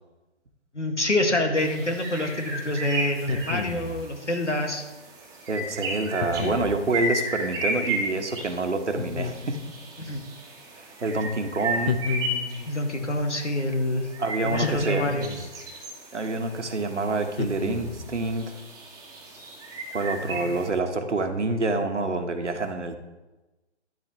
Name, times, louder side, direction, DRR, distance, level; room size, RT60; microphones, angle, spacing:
voice 1, 0.7-4.9 10.0-10.2 12.7-14.1 14.4-15.3 20.2-20.5, left 1 dB, 90° left, 4 dB, 2.0 m, -26 dB
sound 1, 1.6-20.7, right 1 dB, 10° right, 1.5 m, -35 dB
sound 2, 3.2-4.0 6.2-6.8 9.0-9.8 11.9-12.7 14.5-15.5 17.4-18.1, left 5 dB, 60° left, 1.3 m, -31 dB
voice 2, 5.5-9.6 10.7-12.0 14.2-15.1 16.1-18.6 19.9-23.0, right 3 dB, 80° right, 7 dB, 1.4 m, -27 dB
12.5 x 10.5 x 3.1 m, 1.1 s
figure-of-eight pair, 135°, 35 cm